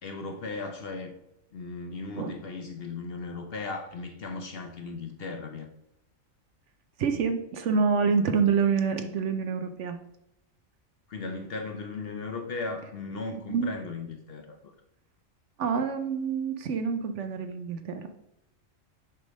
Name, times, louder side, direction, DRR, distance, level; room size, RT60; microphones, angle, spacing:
voice 1, 0.0-1.2 1.5-5.7 11.1-14.7, left 3 dB, 55° left, 5 dB, 0.8 m, -37 dB
voice 2, 7.0-10.0 13.3-13.7 15.6-18.1, right 5 dB, 65° right, 8 dB, 0.9 m, -27 dB
6.7 x 3.4 x 5.2 m, 0.83 s
omnidirectional pair, 1.4 m